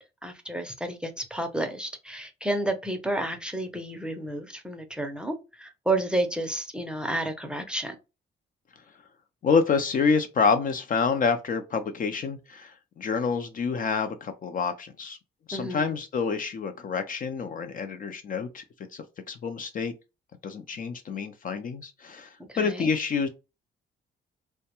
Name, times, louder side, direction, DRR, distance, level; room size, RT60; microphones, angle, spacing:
voice 1, 0.2-8.0 15.5-15.9 22.5-22.9, right 1 dB, 5° right, 0.5 m, -31 dB
voice 2, 9.4-15.2 15.5-18.6 18.9-19.9 20.4-23.3, left 5 dB, 45° left, 0.4 m, -27 dB
2.2 x 2.2 x 2.8 m
cardioid pair, 90°, 20 cm